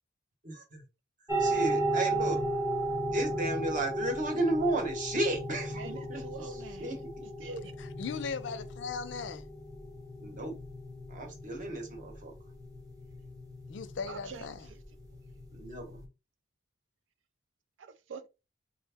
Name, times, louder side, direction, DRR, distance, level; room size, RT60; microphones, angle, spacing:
voice 1, 0.4-0.8 1.4-2.4 3.1-7.1 10.2-10.5 11.1-12.3 15.5-16.0, right 1 dB, 40° right, 0.9 m, -33 dB
sound 1, 1.3-16.0, right 1 dB, 20° right, 0.6 m, -35 dB
voice 2, 5.8-6.9 7.4-7.7 14.1-14.5 17.8-18.3, right 4 dB, 75° right, 0.4 m, -44 dB
voice 3, 7.8-9.4 13.7-14.7, left 5 dB, 70° left, 0.4 m, -38 dB
3.4 x 2.1 x 3.4 m
head